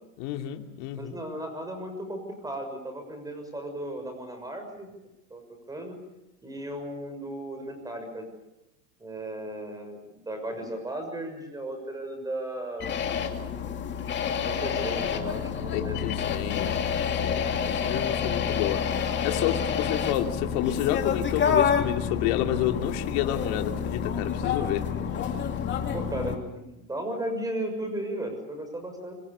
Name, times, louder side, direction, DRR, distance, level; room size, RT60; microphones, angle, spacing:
voice 1, 0.2-1.2 15.7-17.6 17.8-24.9, left 12 dB, 55° left, 4 dB, 2.9 m, -30 dB
voice 2, 1.0-4.9 5.3-5.4 5.7-6.0 6.4-8.3 9.0-12.9 14.4-16.1 25.9-29.1, right 1 dB, 10° right, 5 dB, 6.5 m, -35 dB
sound 1, 12.8-26.4, left 7 dB, 25° left, 2.6 m, -28 dB
26.0 x 25.5 x 6.9 m, 0.94 s
supercardioid pair, 145°, 43 cm